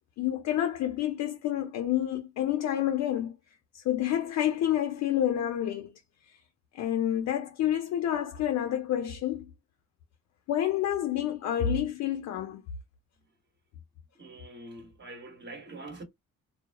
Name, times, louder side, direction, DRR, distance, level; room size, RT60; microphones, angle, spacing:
voice 1, 0.2-3.3 3.7-5.9 6.7-9.5 10.5-12.6, left 11 dB, 65° left, 0.5 m, -28 dB
voice 2, 14.2-16.0, right 2 dB, 35° right, 1.0 m, -44 dB
2.2 x 2.0 x 2.8 m
cardioid pair, 90°, 30 cm